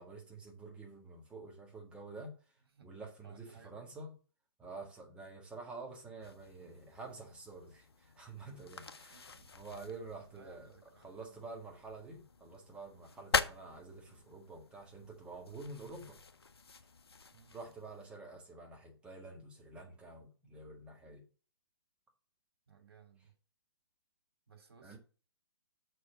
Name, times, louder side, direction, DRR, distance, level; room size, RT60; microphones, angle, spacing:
voice 1, 0.0-2.3 2.8-4.1 4.6-10.7 11.0-16.2 17.5-21.2 24.8-25.0, right 3 dB, 10° right, 0 dB, 1.7 m, -49 dB
voice 2, 3.2-3.9 8.9-9.5 10.3-11.6 17.3-17.6 22.7-23.3 24.5-25.0, right 5 dB, 60° right, 4 dB, 2.7 m, -61 dB
sound 1, 6.2-18.1, left 4 dB, 65° left, 0.8 m, -43 dB
6.9 x 4.5 x 6.3 m, 0.38 s
figure-of-eight pair, 130°, 14 cm